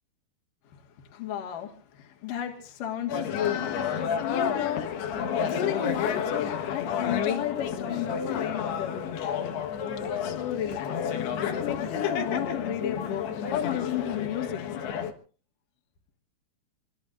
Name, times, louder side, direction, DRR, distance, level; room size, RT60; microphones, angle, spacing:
voice 1, 1.1-3.8 4.3-4.9 5.5-9.2 10.0-14.6, left 10 dB, 60° left, 2 dB, 3.2 m, -33 dB
sound 1, 3.1-15.1, left 7 dB, 90° left, 3.5 m, -30 dB
26.0 x 21.0 x 2.6 m, 0.40 s
omnidirectional pair, 4.5 m